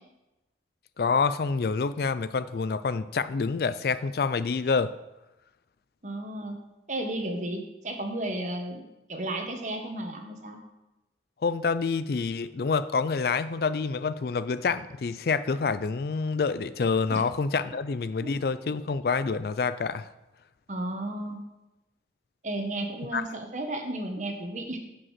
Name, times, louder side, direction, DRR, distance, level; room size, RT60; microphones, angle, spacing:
voice 1, 1.0-4.9 11.4-20.1 23.1-23.2, left 5 dB, 55° left, 14 dB, 0.4 m, -27 dB
voice 2, 6.0-6.6 6.9-10.6 17.1-17.2 18.2-18.3 20.7-21.4 22.4-24.8, right 1 dB, 45° right, 3 dB, 1.4 m, -33 dB
9.8 x 5.4 x 7.5 m, 0.97 s
head